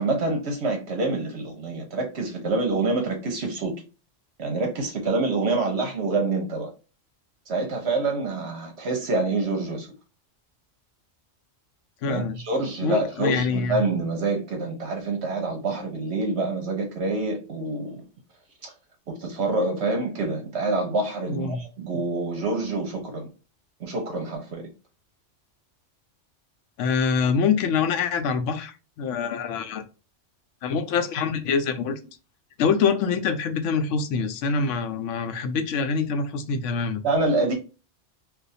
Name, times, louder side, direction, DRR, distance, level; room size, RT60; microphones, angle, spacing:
voice 1, 0.0-3.8 4.4-6.7 7.5-9.9 12.0-18.0 18.6-18.7 19.1-23.3 23.8-24.6 37.0-37.5, right 3 dB, 65° right, 1.0 m, -26 dB
voice 2, 12.0-12.4 12.8-13.8 21.3-21.6 26.8-29.8 30.6-32.0 32.6-37.0, left 5 dB, 85° left, 0.9 m, -25 dB
2.4 x 2.4 x 4.0 m
omnidirectional pair, 1.2 m